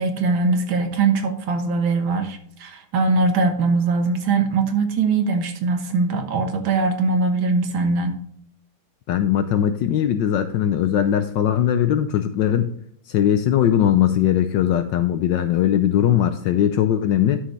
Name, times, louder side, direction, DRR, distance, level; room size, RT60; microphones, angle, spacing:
voice 1, 0.0-8.2, right 3 dB, 70° right, 5 dB, 1.9 m, -21 dB
voice 2, 9.1-12.7 13.1-17.4, left 10 dB, 75° left, 9 dB, 1.1 m, -20 dB
11.5 x 6.5 x 3.2 m, 0.65 s
omnidirectional pair, 2.4 m